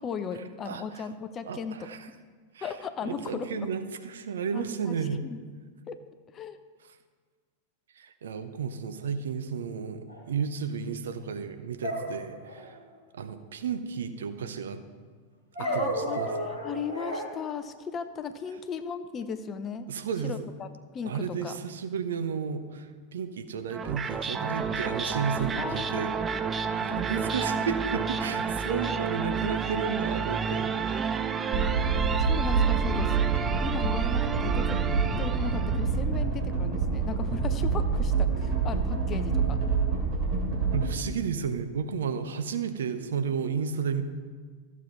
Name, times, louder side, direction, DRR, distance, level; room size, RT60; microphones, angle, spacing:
voice 1, 0.0-2.0 2.6-3.7 4.5-5.0 5.2-5.4 5.9-6.0 6.3-6.6 15.6-19.9 20.2-20.7 20.9-21.6 25.6-26.5 28.8-29.3 29.7-29.9 32.2-33.3 33.6-34.8 35.1-39.6, left 6 dB, 25° left, 10 dB, 0.6 m, -37 dB
voice 2, 0.6-1.1 1.5-2.1 2.5-2.7 3.0-5.2 8.0-12.8 13.1-14.8 15.6-16.3 19.9-20.5 21.0-26.1 26.7-31.0 40.7-44.0, right 6 dB, 65° right, 9 dB, 0.7 m, -33 dB
sound 1, 10.1-10.2 11.8-12.8 15.5-17.2, equal, 85° right, 3.4 m, -32 dB
sound 2, 23.7-35.9, right 6 dB, 20° right, 0.5 m, -31 dB
sound 3, 31.5-40.9, right 5 dB, 45° right, 2.7 m, -26 dB
14.0 x 7.3 x 4.1 m, 1.5 s
figure-of-eight pair, 90°, 0 cm